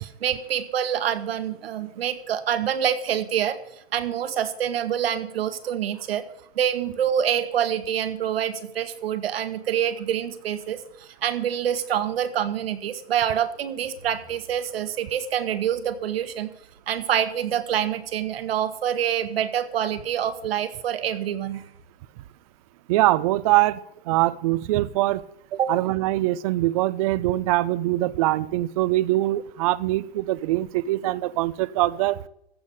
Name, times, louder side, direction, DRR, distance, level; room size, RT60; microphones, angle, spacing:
voice 1, 0.0-3.6 3.9-6.2 6.5-16.5 16.9-21.6 25.5-25.7, right 9 dB, 65° right, 10 dB, 1.6 m, -26 dB
voice 2, 22.9-23.8 24.1-25.2 25.7-32.2, right 17 dB, 35° right, 19 dB, 0.5 m, -23 dB
15.0 x 5.2 x 8.6 m, 0.81 s
hypercardioid pair, 135°, 32 cm